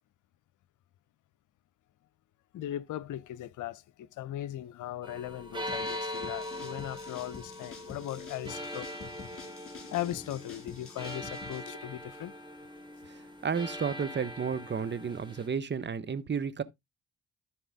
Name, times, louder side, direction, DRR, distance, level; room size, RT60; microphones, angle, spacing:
voice 1, 2.5-8.9 9.9-12.4, left 13 dB, 55° left, 0.8 m, -38 dB
sound 1, 5.0-15.5, left 1 dB, 15° right, 4.2 m, -41 dB
sound 2, 5.7-11.6, left 6 dB, 35° left, 4.1 m, -48 dB
voice 2, 13.4-16.6, right 6 dB, 30° right, 1.1 m, -32 dB
13.5 x 4.8 x 3.7 m
figure-of-eight pair, 40°, 36 cm